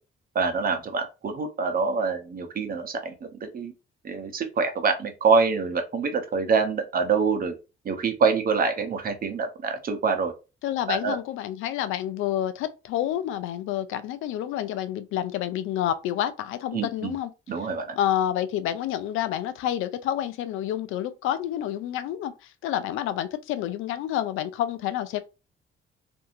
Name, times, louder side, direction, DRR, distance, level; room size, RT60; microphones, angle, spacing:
voice 1, 0.3-3.7 4.0-7.5 7.8-10.3 10.9-11.2 16.7-17.1 17.5-17.9, right 5 dB, 45° right, 0.8 m, -25 dB
voice 2, 10.6-17.3 18.0-25.2, left 11 dB, 90° left, 0.4 m, -29 dB
2.7 x 2.7 x 2.5 m
cardioid pair, 90°, 20 cm